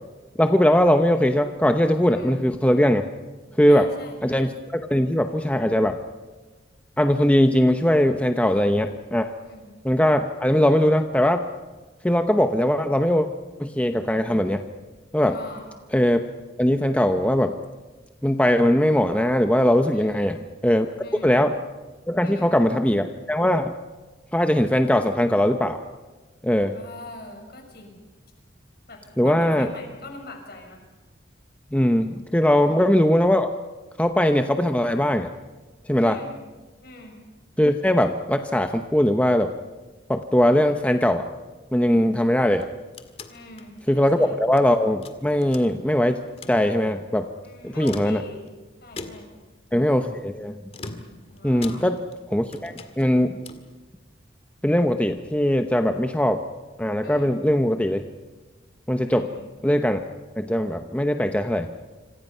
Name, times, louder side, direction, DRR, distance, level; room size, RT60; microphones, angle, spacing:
voice 1, 0.4-3.1 3.6-3.9 4.2-6.0 7.0-9.3 9.8-11.4 12.0-13.3 13.6-14.6 15.1-15.4 15.9-16.2 16.6-17.5 18.2-20.4 20.6-20.9 21.2-21.5 22.1-23.7 24.3-25.8 26.4-26.7 29.2-29.7 31.7-33.5 34.0-35.3 35.9-36.2 37.6-39.5 40.1-41.3 41.7-42.7 43.9-46.2 46.5-47.3 47.6-48.2 49.7-50.6 51.4-52.0 52.3-53.4 54.6-56.4 56.8-58.0 58.9-59.3 59.6-60.0 60.4-61.7, equal, 5° left, 6 dB, 0.8 m, -20 dB
voice 2, 3.7-4.4 8.4-8.9 9.4-9.7 15.3-15.7 19.9-20.3 21.0-21.3 22.2-22.5 26.7-28.0 28.9-30.8 32.5-32.8 36.0-36.4 36.8-37.2 43.3-44.4 47.4-48.4 48.8-49.3 51.3-51.8 57.0-57.3 59.1-59.4, left 2 dB, 55° left, 3 dB, 6.2 m, -42 dB
sound 1, 42.6-44.7 45.0-46.0 46.3-46.6 47.7-48.5 49.0-49.5 50.7-52.2 52.5-53.7, left 2 dB, 30° left, 1.9 m, -40 dB
26.5 x 26.5 x 5.6 m, 1.3 s
head